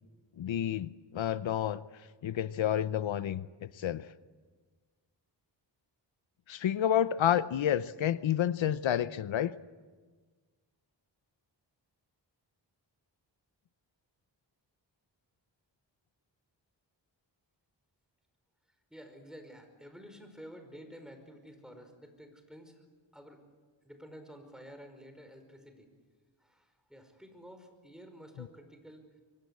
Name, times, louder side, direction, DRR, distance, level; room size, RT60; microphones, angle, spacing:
voice 1, 0.4-1.8 2.2-4.0 6.5-9.5 28.4-28.5, left 10 dB, 90° left, 15 dB, 0.8 m, -30 dB
voice 2, 18.9-22.8 23.1-23.4 23.8-25.9 26.4-29.2, equal, ahead, 6 dB, 5.2 m, -51 dB
24.5 x 24.0 x 8.4 m, 1.4 s
wide cardioid pair, 90°, 45 cm